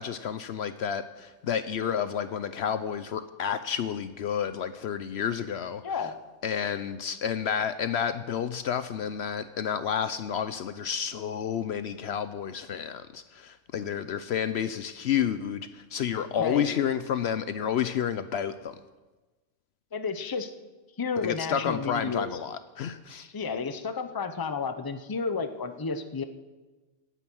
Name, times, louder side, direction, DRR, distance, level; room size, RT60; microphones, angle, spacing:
voice 1, 0.0-5.8 6.4-18.7 21.2-23.3, left 8 dB, 65° left, 12 dB, 0.8 m, -30 dB
voice 2, 5.8-6.2 16.4-16.7 19.9-20.5 21.0-22.4 23.3-26.2, left 5 dB, 20° left, 9 dB, 0.7 m, -31 dB
16.5 x 9.2 x 6.2 m, 1.2 s
omnidirectional pair, 1.3 m